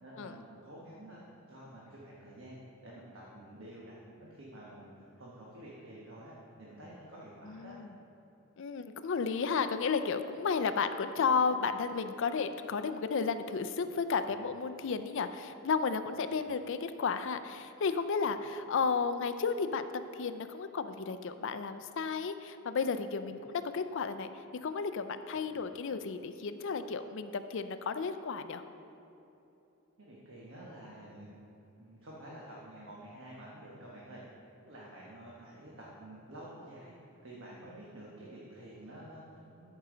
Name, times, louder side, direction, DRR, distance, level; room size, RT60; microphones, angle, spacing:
voice 1, 0.0-7.8 14.3-14.4 16.1-16.2 18.2-18.3 23.3-23.4 25.3-25.5 30.0-31.4 31.8-34.2 34.6-39.7, right 1 dB, 65° right, -5 dB, 1.3 m, -50 dB
voice 2, 7.5-7.9 8.6-24.3 24.6-28.6, left 5 dB, 60° left, 10 dB, 0.4 m, -33 dB
13.5 x 5.5 x 3.9 m, 2.9 s
head